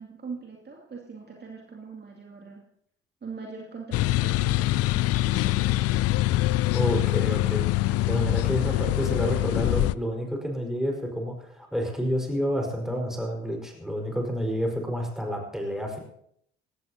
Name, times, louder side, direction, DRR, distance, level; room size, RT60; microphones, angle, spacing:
voice 1, 0.0-2.7 3.2-5.9 8.7-8.9, right 4 dB, 30° right, -1 dB, 2.5 m, -42 dB
sound 1, 3.9-9.9, left 17 dB, 45° left, 0.5 m, -24 dB
voice 2, 6.7-16.0, equal, ahead, 1 dB, 4.8 m, -29 dB
20.0 x 17.0 x 2.9 m, 0.70 s
figure-of-eight pair, 50°, 35 cm